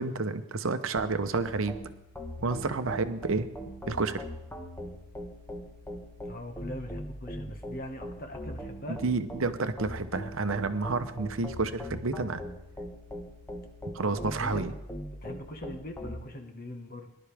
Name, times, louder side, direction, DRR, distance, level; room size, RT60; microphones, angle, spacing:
voice 1, 0.0-1.8 2.4-3.5 3.9-4.2 8.9-12.4 13.9-14.7, right 3 dB, 65° right, 10 dB, 0.8 m, -30 dB
sound 1, 1.0-16.2, equal, 10° left, 1.3 m, -41 dB
voice 2, 6.2-9.0 14.0-14.7 15.2-17.1, left 1 dB, 45° left, 5 dB, 1.6 m, -41 dB
19.5 x 11.5 x 3.5 m, 0.90 s
head